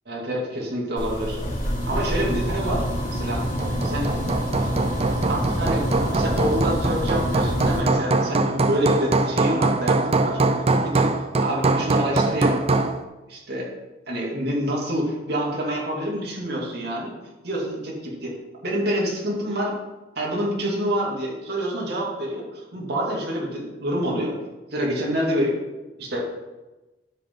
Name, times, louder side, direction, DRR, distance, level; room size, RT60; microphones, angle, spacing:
voice 1, 0.1-1.4 1.9-3.5 3.8-4.1 4.6-4.7 5.3-10.4 10.8-11.1 11.4-12.6 13.3-13.7 14.1-17.1 17.4-18.4 18.6-19.7 20.2-24.3 24.7-25.6 26.0-26.2, equal, 60° right, -3 dB, 2.6 m, -27 dB
sound 1, 1.0-7.8, equal, 45° left, 2.9 m, -27 dB
Hammer, 3.4-13.0, right 3 dB, 30° right, 0.5 m, -23 dB
12.0 x 5.9 x 3.9 m, 1.1 s
head